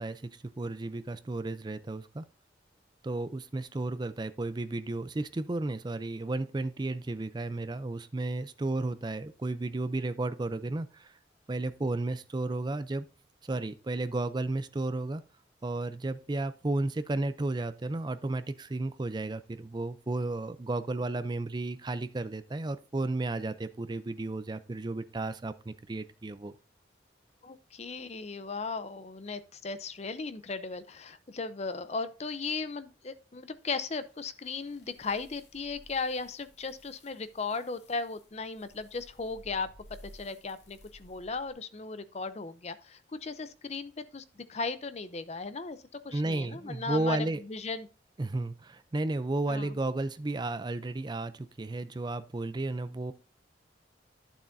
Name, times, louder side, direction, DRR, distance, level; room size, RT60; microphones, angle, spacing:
voice 1, 0.0-2.2 3.0-11.2 11.5-13.1 13.4-15.2 15.6-26.5 46.1-47.4 48.2-53.1, right 2 dB, 25° right, 0.4 m, -33 dB
voice 2, 27.4-39.7 40.0-45.8 46.0-47.2 47.5-47.9 49.5-49.7, left 4 dB, 35° left, 0.6 m, -36 dB
sound 1, 33.6-41.5, left 1 dB, 65° left, 2.3 m, -57 dB
12.0 x 7.2 x 2.6 m
head